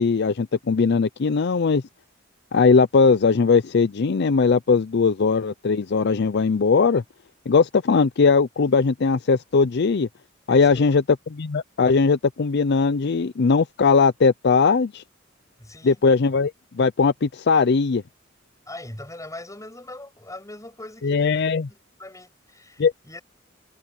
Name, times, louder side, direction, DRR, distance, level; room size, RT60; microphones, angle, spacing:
voice 1, 0.0-1.8 2.5-7.0 7.5-10.1 10.5-11.0 11.4-15.0 15.9-16.5 16.8-18.0 21.0-21.7 22.8-22.9, left 4 dB, 60° left, 0.5 m, -19 dB
voice 2, 10.5-11.0 15.6-16.0 18.7-23.2, left 2 dB, 15° left, 8.0 m, -41 dB
head